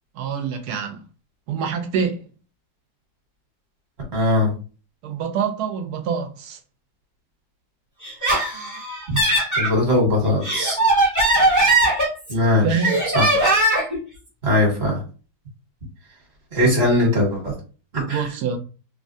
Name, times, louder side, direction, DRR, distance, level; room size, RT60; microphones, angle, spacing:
voice 1, 0.1-1.0 1.5-2.2 5.0-6.6 12.6-13.0 18.1-18.6, right 6 dB, 70° right, 1.0 m, -25 dB
voice 2, 4.1-4.5 9.1-9.2 9.6-10.8 12.3-12.7 13.1-13.3 14.4-15.0 16.5-17.5 17.9-18.2, left 1 dB, 40° right, 1.3 m, -19 dB
Laughter, 8.0-9.7 10.2-12.4 12.8-14.0, right 1 dB, 15° right, 0.7 m, -19 dB
3.3 x 2.2 x 2.6 m
omnidirectional pair, 2.0 m